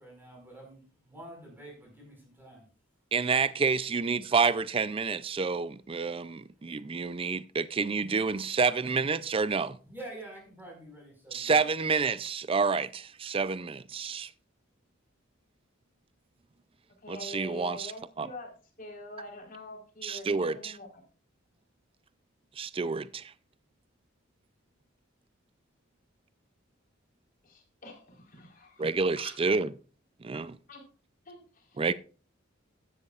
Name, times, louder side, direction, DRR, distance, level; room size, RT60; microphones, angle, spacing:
voice 1, 0.0-2.7 9.9-11.6, right 1 dB, 10° right, 5.2 m, -47 dB
voice 2, 3.1-9.8 11.3-14.3 17.1-17.9 18.2-18.3 20.0-20.7 22.6-23.3 28.8-29.7 30.2-30.5 31.8-31.9, right 4 dB, 30° right, 0.4 m, -29 dB
voice 3, 17.0-18.5 18.8-21.0 27.4-29.3 30.7-30.8 31.3-31.8, left 2 dB, 45° left, 4.1 m, -45 dB
14.0 x 11.0 x 2.4 m
head